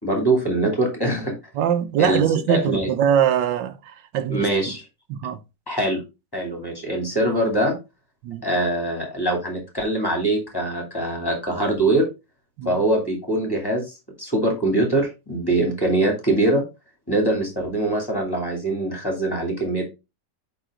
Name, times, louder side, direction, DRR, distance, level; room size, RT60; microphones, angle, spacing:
voice 1, 0.0-1.3 2.0-2.2 2.5-2.9 4.3-4.8 5.7-6.0 6.3-7.7 8.4-12.1 12.6-16.6 17.1-19.8, right 1 dB, 10° left, 2.6 m, -23 dB
voice 2, 1.5-4.8 5.1-5.4 8.2-8.4 12.6-12.8, right 9 dB, 85° right, 1.5 m, -22 dB
10.5 x 4.0 x 3.7 m
omnidirectional pair, 1.9 m